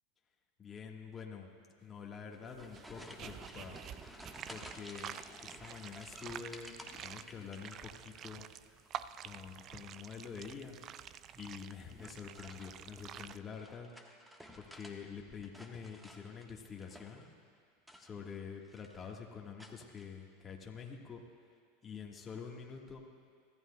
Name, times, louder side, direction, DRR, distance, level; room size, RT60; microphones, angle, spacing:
voice 1, 0.6-1.5 1.8-3.8 4.5-8.5 9.2-10.8 11.3-13.9 14.6-17.2 18.0-21.2 21.8-23.0, left 6 dB, 25° left, 0 dB, 1.5 m, -47 dB
sound 1, 2.3-8.2 8.5-9.1 10.5-10.9 11.9-15.0 15.3-17.3 17.8-18.4 18.6-19.1 19.6-20.1, equal, 5° right, 1.3 m, -54 dB
sound 2, 2.5-13.4, right 10 dB, 40° right, 0.3 m, -49 dB
24.0 x 14.5 x 2.3 m, 2.1 s
hypercardioid pair, 90°, 0 cm